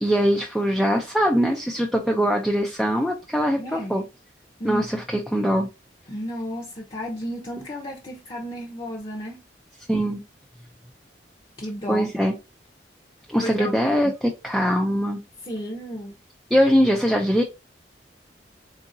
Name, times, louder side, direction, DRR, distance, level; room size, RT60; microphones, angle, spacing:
voice 1, 0.0-4.0 4.6-5.7 9.9-10.2 11.9-12.3 13.3-15.2 16.5-17.4, equal, ahead, 0.3 m, -22 dB
voice 2, 3.6-4.0 4.6-4.8 6.1-9.4 11.6-12.1 13.4-13.9 15.5-16.1, equal, 30° left, 0.7 m, -32 dB
3.7 x 2.5 x 2.6 m
head